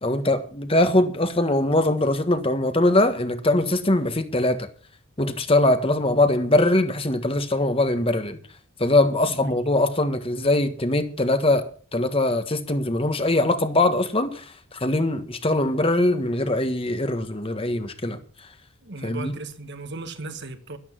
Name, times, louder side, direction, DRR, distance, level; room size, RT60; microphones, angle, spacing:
voice 1, 0.0-4.7 5.2-8.4 8.8-14.4 14.7-18.2 19.0-19.3, left 2 dB, 25° left, 1.5 m, -22 dB
voice 2, 18.8-20.8, right 3 dB, 55° right, 1.6 m, -36 dB
13.0 x 12.0 x 6.0 m
head